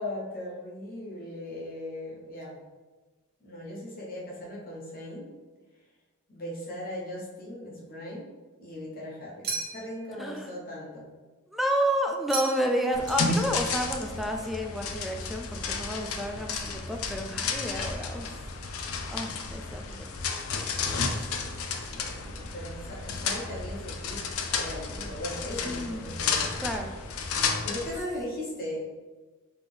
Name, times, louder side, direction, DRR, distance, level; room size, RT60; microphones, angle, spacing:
voice 1, 0.0-2.6 3.4-5.3 6.3-8.3 8.6-11.1 20.5-26.6 27.6-28.8, left 1 dB, 45° left, -4 dB, 1.1 m, -39 dB
sound 1, 9.4-10.1 12.3-12.8 13.1-13.8, right 4 dB, 50° right, 0.9 m, -36 dB
voice 2, 10.2-10.5 11.5-18.4 19.1-20.1 25.6-26.2 26.6-26.9, equal, ahead, 2 dB, 0.3 m, -30 dB
sound 2, 12.9-28.0, left 4 dB, 90° left, 0.5 m, -32 dB
4.0 x 3.3 x 3.4 m, 1.3 s
head